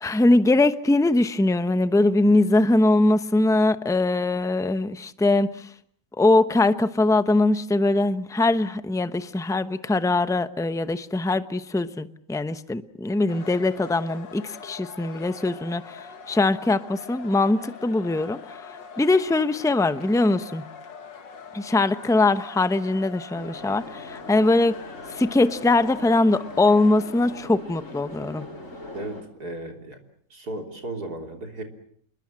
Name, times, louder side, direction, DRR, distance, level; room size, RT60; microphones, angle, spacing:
voice 1, 0.0-5.7 6.2-16.0 16.3-18.6 19.0-20.6 21.5-24.8 25.1-28.5, left 2 dB, 5° left, 11 dB, 0.4 m, -22 dB
sound 1, 13.3-27.4, left 6 dB, 85° left, 2.3 m, -43 dB
sound 2, 23.3-29.2, left 2 dB, 45° left, 5.3 m, -42 dB
voice 2, 28.9-30.0 30.3-31.6, right 2 dB, 60° right, 3 dB, 3.9 m, -35 dB
28.5 x 21.5 x 7.5 m, 0.63 s
omnidirectional pair, 1.9 m